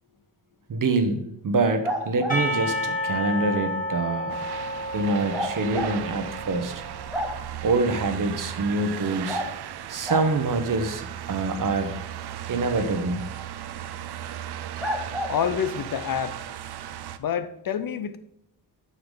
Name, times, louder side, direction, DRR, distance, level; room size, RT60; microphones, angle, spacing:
voice 1, 0.7-4.3 4.9-6.8 7.6-9.4 9.9-11.9 12.5-13.2, right 3 dB, 50° right, 1.0 m, -25 dB
sound 1, 1.8-2.4 5.3-5.9 6.4-6.5 6.8-7.6 9.3-9.5 10.1-10.3 13.7-13.8 14.8-15.3, equal, ahead, 1.2 m, -29 dB
Percussion / Church bell, 2.3-7.1, equal, 20° left, 2.4 m, -31 dB
sound 2, 4.3-17.2, right 11 dB, 70° right, 0.6 m, -36 dB
voice 2, 15.3-16.4 17.2-18.2, left 8 dB, 55° left, 0.6 m, -27 dB
8.2 x 6.9 x 3.9 m
wide cardioid pair, 130°, 41 cm